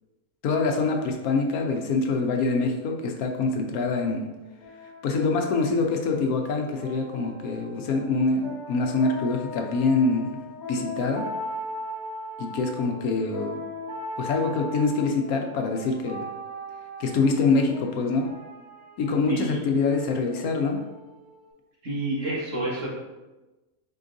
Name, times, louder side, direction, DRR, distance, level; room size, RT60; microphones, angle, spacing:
voice 1, 0.4-4.3 5.0-10.4 10.7-11.3 12.4-13.6 14.2-16.3 17.0-18.3 19.0-20.8, left 3 dB, 75° left, 3 dB, 1.0 m, -25 dB
sound 1, 4.1-21.5, left 1 dB, 30° right, 1.7 m, -39 dB
voice 2, 19.3-19.6 21.8-22.9, right 1 dB, 55° right, -7 dB, 1.8 m, -29 dB
4.6 x 4.3 x 2.6 m, 1.1 s
omnidirectional pair, 1.6 m